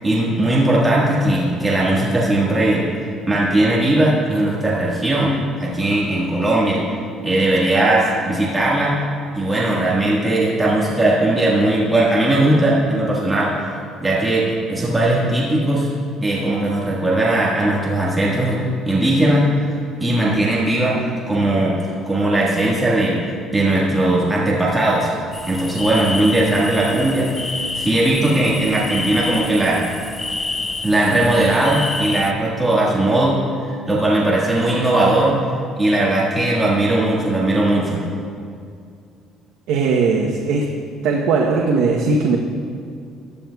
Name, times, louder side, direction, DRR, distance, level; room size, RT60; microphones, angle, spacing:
voice 1, 0.0-2.8 3.3-6.8 7.2-9.0 9.3-13.7 14.0-15.9 16.2-23.2 23.5-25.1 25.5-27.4 27.7-29.8 30.8-35.4 35.8-38.0, right 1 dB, 10° right, -6 dB, 1.6 m, -18 dB
sound 1, 25.3-32.3, left 3 dB, 15° left, 0.4 m, -28 dB
voice 2, 39.7-40.7 41.0-42.4, right 4 dB, 80° right, -1 dB, 0.9 m, -18 dB
15.5 x 10.5 x 2.3 m, 2.3 s
cardioid pair, 150°, 0 cm